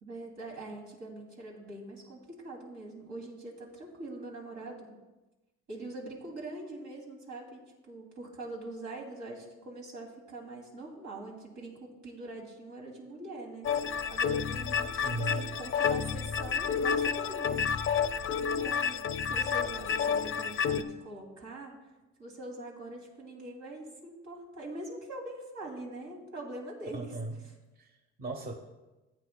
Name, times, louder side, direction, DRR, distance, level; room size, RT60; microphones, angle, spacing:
voice 1, 0.0-5.0 5.7-13.7 14.1-17.6 18.4-21.7 22.2-27.1, right 2 dB, 70° right, -1 dB, 2.7 m, -43 dB
sound 1, 13.6-20.8, left 6 dB, 45° left, 0.5 m, -30 dB
voice 2, 14.9-15.4 26.9-27.3 27.8-28.5, right 2 dB, 30° right, 4 dB, 0.9 m, -37 dB
14.5 x 8.5 x 2.2 m, 1.1 s
cardioid pair, 90°, 30 cm